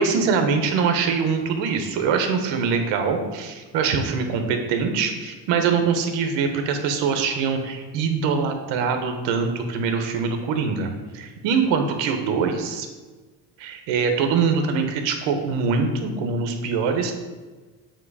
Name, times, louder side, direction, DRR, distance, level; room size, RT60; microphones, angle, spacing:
voice 1, 0.0-12.9 13.6-17.1, right 5 dB, 80° right, 5 dB, 1.1 m, -23 dB
7.6 x 3.1 x 4.8 m, 1.3 s
cardioid pair, 140°, 43 cm